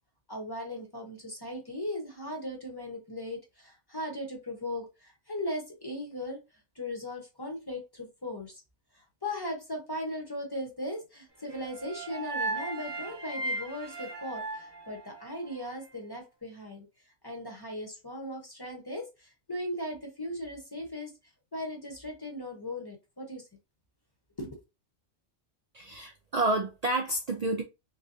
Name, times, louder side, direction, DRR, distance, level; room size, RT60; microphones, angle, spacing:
voice 1, 0.3-6.4 6.8-8.6 9.2-16.9 17.2-21.1 21.5-23.5 24.4-24.5, left 1 dB, 20° left, 0.8 m, -38 dB
sound 1, 11.5-15.7, right 2 dB, 25° right, 0.8 m, -37 dB
voice 2, 25.7-27.6, right 2 dB, 75° right, 0.3 m, -29 dB
3.3 x 3.2 x 2.6 m
omnidirectional pair, 1.3 m